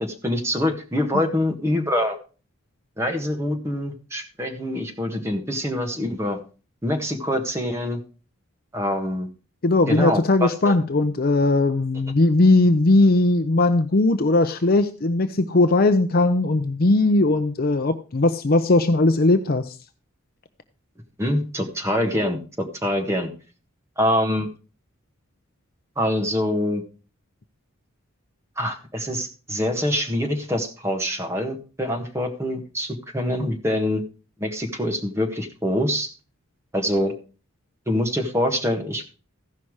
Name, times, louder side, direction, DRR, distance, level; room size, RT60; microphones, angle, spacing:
voice 1, 0.0-2.2 3.0-6.4 6.8-8.0 8.7-9.3 9.9-10.7 21.2-23.3 24.0-24.5 26.0-26.8 28.6-34.0 34.4-36.1 36.7-37.1 37.9-39.0, left 1 dB, 15° right, 3 dB, 1.6 m, -25 dB
voice 2, 9.6-19.8, left 2 dB, 45° left, 9 dB, 0.6 m, -19 dB
15.0 x 5.8 x 4.8 m, 0.35 s
head